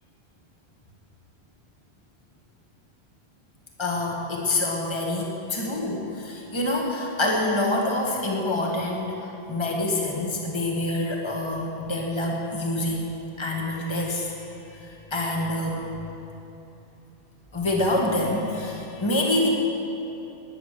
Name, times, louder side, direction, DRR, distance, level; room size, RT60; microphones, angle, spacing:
voice 1, 3.8-13.1 13.4-14.3 14.7-15.9 17.5-19.5, left 1 dB, 25° left, -1 dB, 1.7 m, -26 dB
18.5 x 10.0 x 6.8 m, 2.9 s
omnidirectional pair, 1.1 m